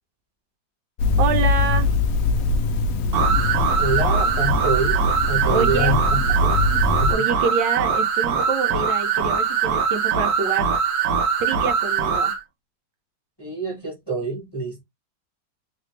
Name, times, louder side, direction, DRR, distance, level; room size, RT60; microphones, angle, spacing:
sound 1, 1.0-7.2, left 3 dB, 70° left, 0.8 m, -22 dB
voice 1, 1.2-1.9 5.5-6.0 7.1-10.7 11.4-12.3, right 5 dB, 85° right, 1.5 m, -26 dB
sound 2, 3.1-12.4, right 6 dB, 60° right, 1.3 m, -22 dB
voice 2, 3.8-6.6 7.0-7.1 13.4-14.8, right 2 dB, 15° left, 0.9 m, -26 dB
3.4 x 2.5 x 3.2 m
omnidirectional pair, 2.0 m